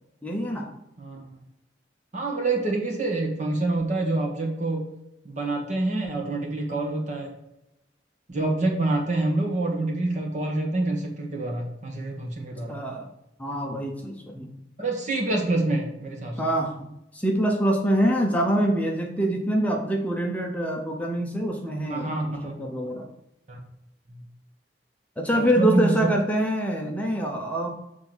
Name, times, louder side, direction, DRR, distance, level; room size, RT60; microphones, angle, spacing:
voice 1, 0.2-0.7 12.7-13.1 13.4-14.5 16.4-16.9 17.1-23.1 25.2-27.7, right 1 dB, 10° left, 0 dB, 0.8 m, -25 dB
voice 2, 1.0-1.4 2.1-4.9 5.3-7.3 8.3-12.8 14.8-16.5 21.9-22.6 23.5-23.6 24.1-24.2 25.3-26.1, right 2 dB, 45° right, 0 dB, 1.7 m, -27 dB
7.4 x 3.5 x 6.1 m, 0.85 s
head